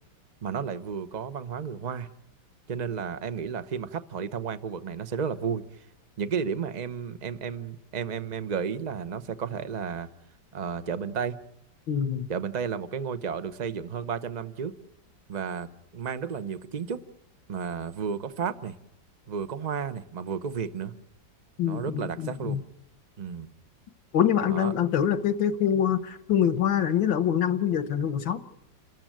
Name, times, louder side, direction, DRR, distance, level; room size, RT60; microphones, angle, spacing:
voice 1, 0.4-2.1 2.7-5.6 6.2-10.1 10.5-11.4 12.3-14.7 15.3-15.7 15.9-17.0 17.5-18.7 19.3-20.9 21.6-22.6 23.2-23.5 24.5-24.7, right 6 dB, 35° right, 11 dB, 0.7 m, -32 dB
voice 2, 11.9-12.3 21.6-22.6 24.1-28.4, left 9 dB, 85° left, 12 dB, 1.9 m, -25 dB
29.5 x 14.0 x 9.1 m, 0.81 s
omnidirectional pair, 2.0 m